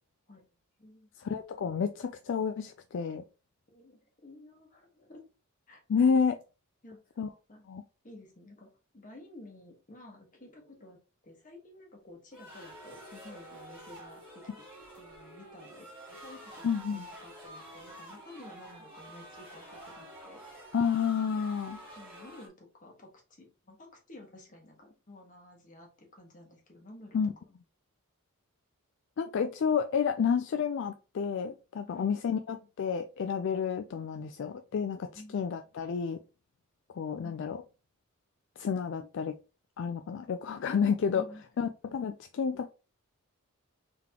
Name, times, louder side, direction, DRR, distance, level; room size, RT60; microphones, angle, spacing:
voice 1, 0.3-1.1 3.7-5.3 5.7-5.8 6.8-7.2 7.5-7.7 8.0-11.0 11.2-14.4 15.0-15.9 16.2-16.6 16.9-20.4 21.6-27.2 31.9-32.1 35.1-35.5 37.2-37.4 41.1-41.4, left 1 dB, 35° left, 1 dB, 1.4 m, -52 dB
voice 2, 1.2-3.2 5.9-6.4 7.2-7.3 7.7-7.8 16.6-17.1 20.7-21.8 27.1-27.3 29.2-36.2 37.0-37.6 38.6-39.4 39.8-41.2 41.6-42.7, left 6 dB, 60° left, 7 dB, 0.3 m, -30 dB
sound 1, 12.3-22.5, right 1 dB, 10° right, 2.3 m, -49 dB
3.8 x 3.7 x 2.9 m, 0.32 s
head